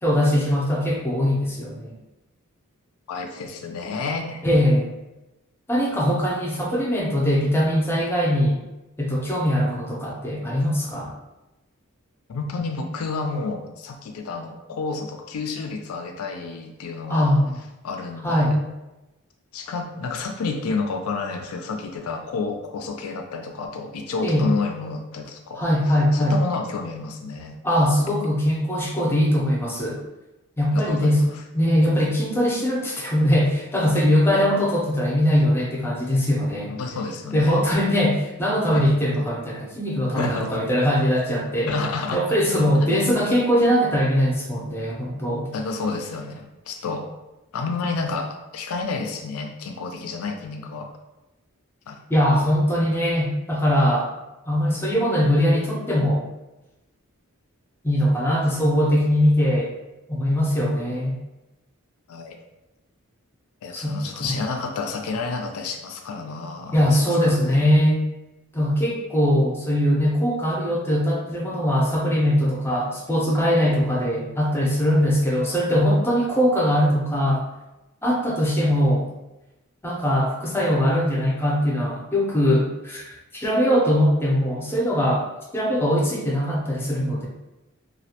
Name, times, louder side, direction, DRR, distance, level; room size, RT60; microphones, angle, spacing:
voice 1, 0.0-1.9 4.4-4.9 5.7-8.6 9.0-11.1 17.1-17.6 18.2-18.6 24.2-24.5 25.6-26.3 27.6-30.0 30.6-31.2 31.5-36.7 37.3-41.7 42.1-45.5 52.1-54.1 54.5-56.3 57.8-59.7 60.1-61.2 63.7-64.3 66.7-68.0 68.5-77.4 78.0-79.1 79.8-85.3 85.5-87.3, equal, 10° left, -3 dB, 0.4 m, -21 dB
voice 2, 3.1-4.4 12.3-17.3 17.8-18.6 19.5-25.6 26.1-27.6 30.7-31.4 36.7-37.6 38.7-38.8 40.2-40.5 41.7-42.2 42.9-43.0 45.5-47.0 47.5-50.9 51.9-52.0 62.1-62.4 63.6-67.7, left 4 dB, 80° left, 4 dB, 0.4 m, -30 dB
2.3 x 2.1 x 2.8 m, 1.0 s
head